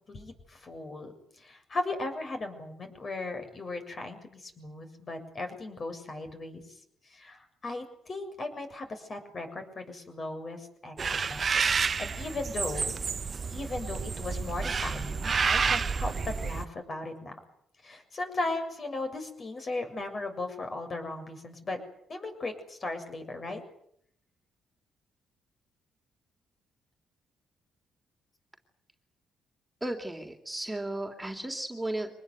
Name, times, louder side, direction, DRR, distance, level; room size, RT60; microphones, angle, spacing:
voice 1, 0.1-6.6 7.0-13.0 13.5-16.1 16.4-17.3 17.8-21.8 22.1-23.6, left 2 dB, 40° left, 6 dB, 7.1 m, -37 dB
sound 1, 11.0-16.6, right 5 dB, 40° right, 1.0 m, -29 dB
voice 2, 29.8-32.1, right 1 dB, 10° right, 3 dB, 3.5 m, -34 dB
25.0 x 20.0 x 9.5 m, 0.70 s
cardioid pair, 90°, 0 cm